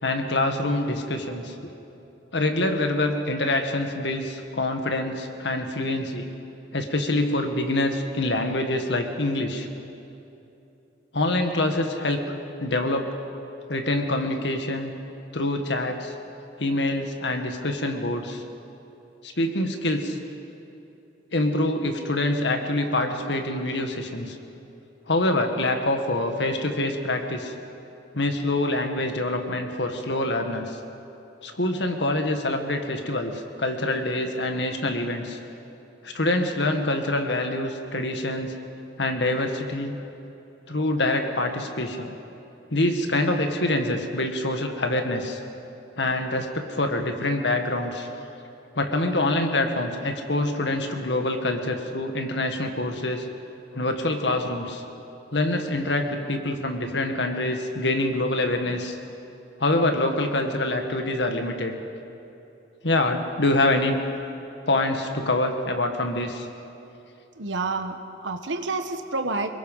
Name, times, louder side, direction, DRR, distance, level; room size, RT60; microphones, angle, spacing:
voice 1, 0.0-1.6 2.3-6.3 6.7-9.7 11.1-12.2 12.6-13.1 13.7-14.9 15.3-16.1 16.6-18.4 19.2-20.2 21.3-24.4 25.1-27.5 28.1-30.8 31.4-35.4 36.0-38.5 39.0-39.9 40.7-42.1 42.7-45.4 46.0-48.1 48.8-53.3 53.7-54.8 55.3-59.0 59.6-61.8 62.8-63.9 64.7-66.5, left 2 dB, 70° left, 5 dB, 1.9 m, -25 dB
voice 2, 67.3-69.5, right 3 dB, 90° right, 7 dB, 1.3 m, -29 dB
28.5 x 20.0 x 5.7 m, 2.9 s
head